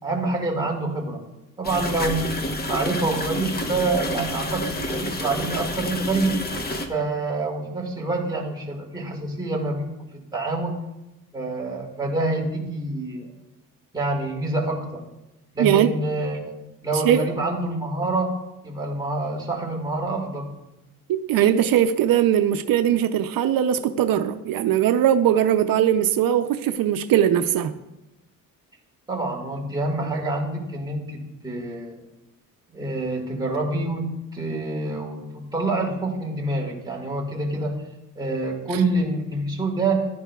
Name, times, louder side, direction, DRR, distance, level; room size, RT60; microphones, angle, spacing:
voice 1, 0.0-1.2 1.6-6.3 6.9-9.9 10.3-10.8 11.3-13.3 13.9-15.0 15.5-18.3 18.6-20.5 29.1-32.0 32.7-37.8 38.2-40.1, right 2 dB, 10° right, 1.8 m, -27 dB
sound 1, 1.6-6.9, left 1 dB, 30° left, 0.9 m, -29 dB
voice 2, 15.6-15.9 17.0-17.2 21.1-27.7, right 10 dB, 80° right, 0.6 m, -20 dB
14.5 x 11.0 x 2.3 m
cardioid pair, 155°, 34 cm